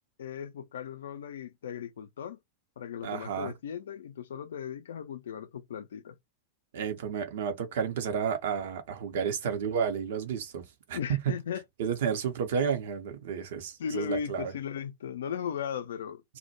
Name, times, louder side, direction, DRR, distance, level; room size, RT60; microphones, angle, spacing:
voice 1, 0.2-2.4 2.8-6.1 10.9-11.6 13.8-16.2, left 8 dB, 60° left, 0.4 m, -37 dB
voice 2, 3.0-3.5 6.7-10.6 10.9-11.2 11.8-14.5, right 7 dB, 55° right, 0.6 m, -31 dB
2.1 x 2.1 x 2.9 m
figure-of-eight pair, 90°, 0 cm